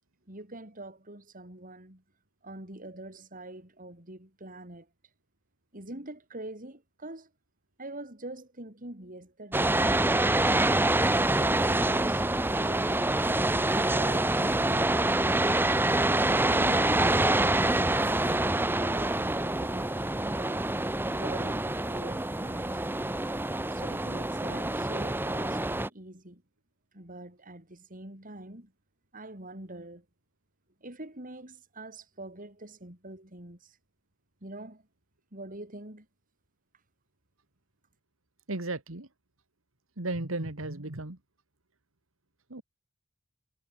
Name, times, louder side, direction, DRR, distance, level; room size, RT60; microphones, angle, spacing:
voice 1, 0.3-2.0 2.4-4.9 5.7-7.3 7.8-10.2 10.8-13.1 13.7-15.7 16.4-17.1 17.4-20.6 21.1-22.8 23.7-26.4 26.9-28.7 29.1-30.0 30.8-33.8 34.4-34.9 35.3-36.1, right 1 dB, 40° right, 6.5 m, -44 dB
sound 1, 9.5-25.9, right 2 dB, 10° right, 1.1 m, -26 dB
voice 2, 38.5-39.1 40.0-41.2 42.5-42.6, right 2 dB, 85° right, 2.3 m, -34 dB
head